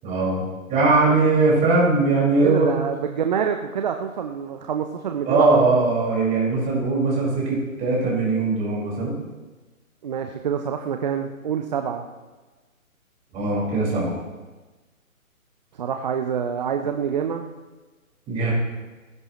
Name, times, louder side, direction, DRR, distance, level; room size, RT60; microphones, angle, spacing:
voice 1, 0.0-2.7 5.3-9.1 13.3-14.1 18.3-18.5, right 3 dB, 15° right, -5 dB, 5.2 m, -20 dB
voice 2, 2.4-5.9 10.0-12.1 15.7-17.5, right 7 dB, 30° right, 6 dB, 0.7 m, -26 dB
28.5 x 11.0 x 3.1 m, 1.3 s
figure-of-eight pair, 140°, 42 cm